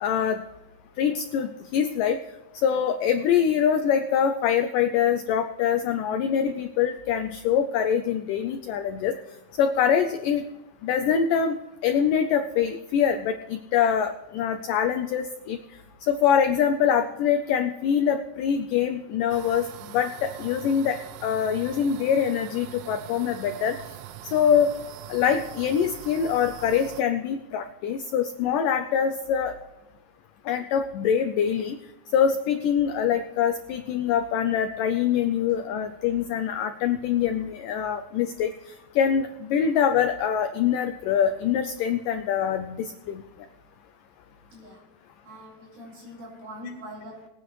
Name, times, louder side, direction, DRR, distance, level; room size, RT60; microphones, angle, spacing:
voice 1, 0.0-0.4 1.0-2.2 2.6-9.2 9.6-10.5 10.8-11.6 11.8-15.6 16.1-19.7 19.9-23.8 24.3-24.7 25.1-29.5 30.5-31.8 32.1-43.2, left 8 dB, 85° left, 7 dB, 1.9 m, -24 dB
sound 1, 19.3-27.0, right 13 dB, 85° right, 2.7 m, -42 dB
voice 2, 44.5-44.8 45.2-47.3, equal, 60° right, -3 dB, 6.7 m, -42 dB
20.5 x 9.7 x 3.1 m, 1.0 s
omnidirectional pair, 4.7 m